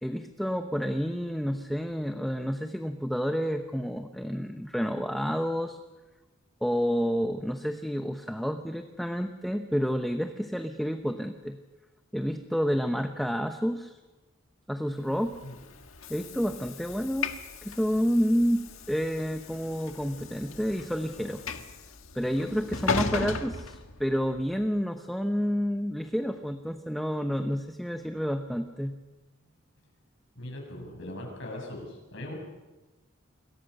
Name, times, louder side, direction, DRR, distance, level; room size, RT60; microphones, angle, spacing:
voice 1, 0.0-5.8 6.6-11.6 12.1-14.0 14.7-15.4 16.1-21.4 22.1-29.0, equal, ahead, 6 dB, 0.9 m, -29 dB
Train / Sliding door, 15.2-24.5, left 4 dB, 85° left, 1.7 m, -37 dB
voice 2, 30.3-32.4, left 1 dB, 65° left, 1 dB, 7.7 m, -40 dB
28.5 x 22.0 x 6.7 m, 1.2 s
head